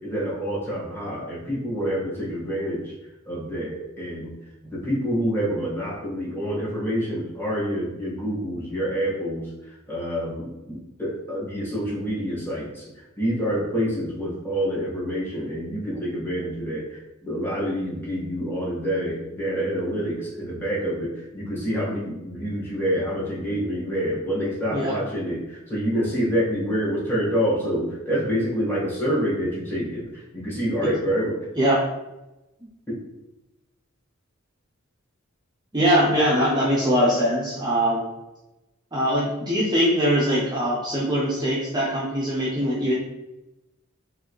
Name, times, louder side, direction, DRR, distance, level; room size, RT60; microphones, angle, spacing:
voice 1, 0.0-2.9 3.2-4.3 4.6-9.4 9.9-12.8 13.2-31.4 32.9-33.0, equal, 10° left, -7 dB, 1.5 m, -27 dB
voice 2, 31.6-31.9 35.7-38.0 38.9-42.9, equal, 20° right, -6 dB, 0.7 m, -22 dB
4.6 x 2.7 x 3.1 m, 0.99 s
head